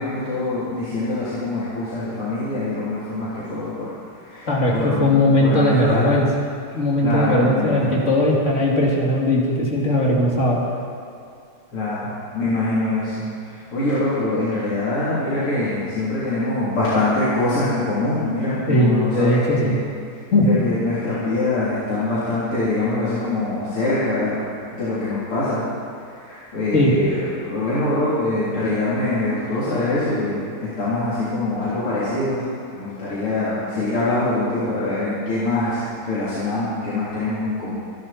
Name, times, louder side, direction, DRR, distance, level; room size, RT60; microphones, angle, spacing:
voice 1, 0.0-3.9 4.2-6.2 7.0-8.0 11.7-12.1 12.3-19.8 20.4-25.6 25.9-32.4 32.7-37.7, left 2 dB, 80° left, -11 dB, 4.3 m, -24 dB
voice 2, 5.0-6.3 6.7-10.6 18.7-19.8 20.3-20.6 26.7-26.9, left 1 dB, 35° left, -3 dB, 3.1 m, -18 dB
27.0 x 11.0 x 4.4 m, 2.5 s
omnidirectional pair, 2.4 m